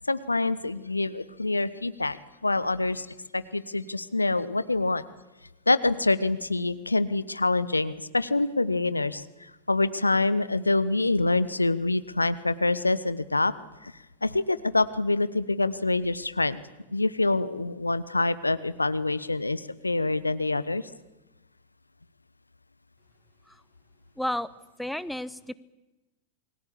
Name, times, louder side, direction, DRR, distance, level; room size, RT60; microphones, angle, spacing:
voice 1, 0.0-2.2 2.4-3.1 3.3-5.0 5.7-13.5 13.8-13.9 14.2-16.6 16.9-20.9, left 2 dB, 80° left, 16 dB, 1.0 m, -26 dB
voice 2, 24.2-24.5 24.8-25.5, left 1 dB, ahead, 15 dB, 1.0 m, -32 dB
28.5 x 21.0 x 8.5 m, 1.0 s
figure-of-eight pair, 90°, 0 cm